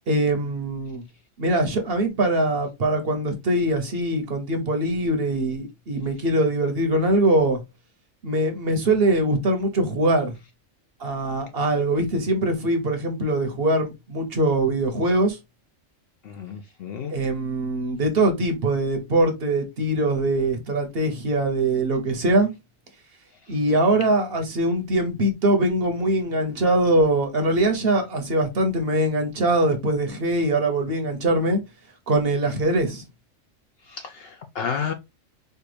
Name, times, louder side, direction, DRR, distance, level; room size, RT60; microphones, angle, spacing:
voice 1, 0.1-1.0 1.4-7.6 8.2-10.3 11.0-15.4 17.1-22.5 23.5-31.6 32.1-33.0, right 1 dB, 55° right, 0.9 m, -22 dB
voice 2, 16.2-17.1 33.9-34.9, left 6 dB, 65° left, 0.6 m, -31 dB
4.4 x 2.2 x 3.1 m
omnidirectional pair, 1.4 m